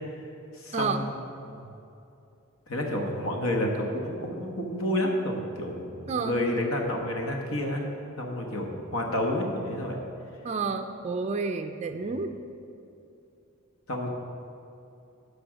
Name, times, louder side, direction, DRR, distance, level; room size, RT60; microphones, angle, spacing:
voice 1, 0.6-1.1 2.7-7.9 8.2-10.0 13.9-14.1, left 1 dB, 70° left, 1 dB, 1.2 m, -29 dB
voice 2, 6.1-6.5 10.4-12.3, right 4 dB, 30° right, 6 dB, 0.4 m, -30 dB
11.0 x 5.1 x 6.3 m, 2.7 s
head